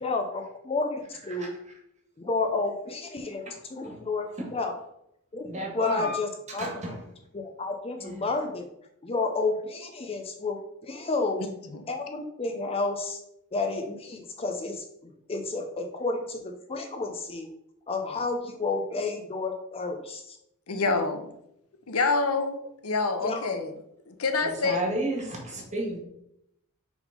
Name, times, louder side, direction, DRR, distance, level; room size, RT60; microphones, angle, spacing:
voice 1, 0.0-1.5 2.2-3.4 3.7-4.7 5.3-6.7 7.3-8.6 9.0-11.4 11.9-13.2 13.5-14.8 15.3-17.5 17.9-20.4 23.2-23.7, left 3 dB, 25° left, 4 dB, 0.6 m, -31 dB
voice 2, 5.5-7.0 8.0-8.2 24.4-26.0, right 1 dB, 35° right, 0 dB, 1.8 m, -33 dB
voice 3, 20.7-21.3 21.9-22.6 22.8-23.7 24.1-24.8 25.5-25.8, left 4 dB, 90° left, 7 dB, 0.9 m, -27 dB
6.1 x 3.6 x 5.1 m, 0.78 s
head